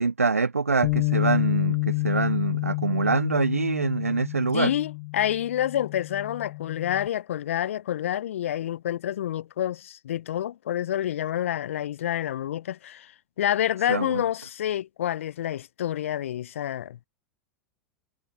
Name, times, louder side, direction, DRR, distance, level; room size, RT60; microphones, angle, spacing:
voice 1, 0.0-4.7 13.9-14.2, right 4 dB, 90° right, 0.5 m, -25 dB
Bass guitar, 0.8-7.1, left 27 dB, 50° left, 0.7 m, -29 dB
voice 2, 4.5-13.1 13.4-17.1, left 11 dB, 70° left, 0.9 m, -28 dB
figure-of-eight pair, 90°, 7 cm